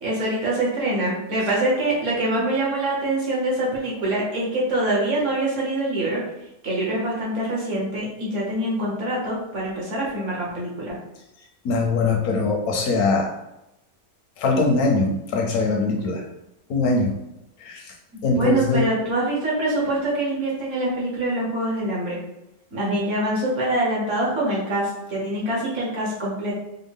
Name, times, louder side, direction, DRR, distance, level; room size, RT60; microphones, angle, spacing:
voice 1, 0.0-6.2 6.6-10.9 18.1-22.2 22.7-26.5, right 1 dB, 55° right, -4 dB, 1.5 m, -24 dB
voice 2, 11.6-13.3 14.4-16.2 16.7-17.2 17.6-17.9 18.2-18.8, left 3 dB, 75° left, 1 dB, 1.2 m, -21 dB
4.6 x 2.2 x 3.6 m, 0.89 s
omnidirectional pair, 1.6 m